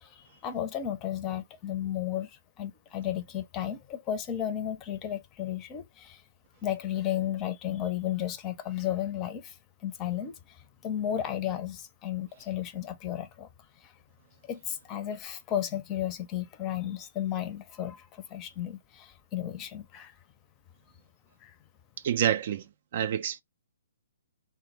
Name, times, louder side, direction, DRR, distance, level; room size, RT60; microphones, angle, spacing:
voice 1, 0.0-6.2 6.6-9.6 9.8-13.5 13.8-13.9 14.5-20.2 21.4-21.5, left 11 dB, 25° left, 0.5 m, -34 dB
voice 2, 22.0-22.7 22.9-23.4, right 9 dB, 45° right, 0.3 m, -27 dB
3.4 x 2.0 x 3.0 m
figure-of-eight pair, 130°, 0 cm